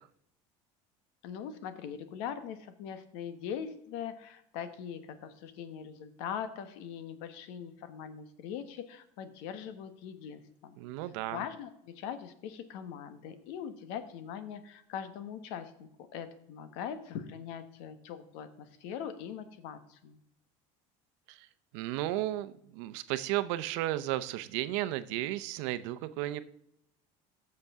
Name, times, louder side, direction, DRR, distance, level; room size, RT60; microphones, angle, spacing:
voice 1, 1.2-10.8 11.3-20.2, left 8 dB, 75° left, 11 dB, 1.2 m, -41 dB
voice 2, 10.8-11.4 21.3-21.5 21.7-26.4, right 15 dB, 80° right, 13 dB, 0.7 m, -34 dB
15.5 x 6.6 x 3.6 m, 0.75 s
cardioid pair, 125°, 15 cm